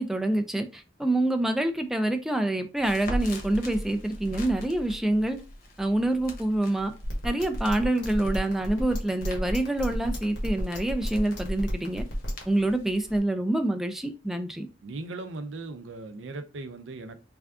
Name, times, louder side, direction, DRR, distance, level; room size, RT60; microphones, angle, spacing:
voice 1, 0.0-5.4 5.8-6.9 7.2-12.1 12.5-14.7, right 1 dB, ahead, 0.3 m, -26 dB
Crackle, 2.8-13.2, equal, 50° left, 1.0 m, -41 dB
sound 1, 7.0-12.4, equal, 80° left, 1.3 m, -33 dB
voice 2, 14.8-17.2, right 2 dB, 85° right, 0.5 m, -38 dB
3.5 x 2.3 x 3.5 m
head